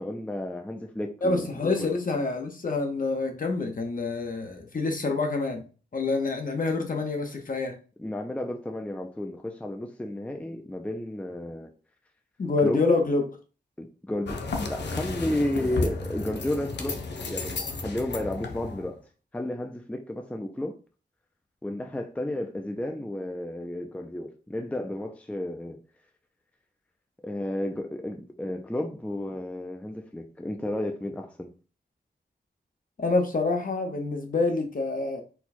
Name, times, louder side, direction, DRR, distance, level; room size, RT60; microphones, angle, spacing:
voice 1, 0.0-1.9 8.0-11.7 12.6-12.9 13.8-17.0 17.3-19.0 19.3-20.8 21.6-25.8 27.2-31.5, left 1 dB, 10° left, 0.4 m, -32 dB
voice 2, 1.2-5.6 5.9-7.8 12.4-13.4 33.0-35.2, left 3 dB, 55° left, 0.9 m, -27 dB
sound 1, 14.3-18.9, left 3 dB, 90° left, 0.8 m, -33 dB
4.4 x 2.3 x 4.2 m
wide cardioid pair, 125°, 18 cm